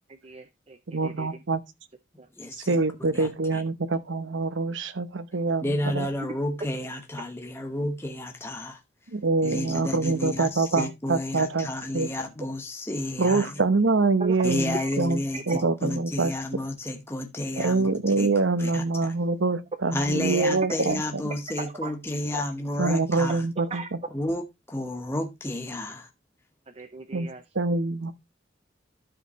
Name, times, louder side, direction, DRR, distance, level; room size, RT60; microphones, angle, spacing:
voice 1, 0.1-1.3 2.2-2.3 9.4-9.5 14.2-14.4 14.7-14.9 15.3-15.7 21.6-21.9 22.3-22.5 23.7-23.9 26.7-27.4, right 3 dB, 30° right, 0.6 m, -37 dB
voice 2, 0.9-1.6 2.7-6.1 9.1-12.1 13.2-15.2 15.5-16.3 17.6-21.0 22.8-23.8 27.1-27.3 27.5-28.1, right 3 dB, 75° right, 0.9 m, -25 dB
voice 3, 2.4-2.7 3.1-3.6 5.6-8.8 9.4-13.5 14.4-17.9 18.2-18.3 18.6-18.8 19.9-23.4 24.1-26.1, left 1 dB, 15° left, 1.0 m, -31 dB
13.0 x 5.0 x 3.1 m
head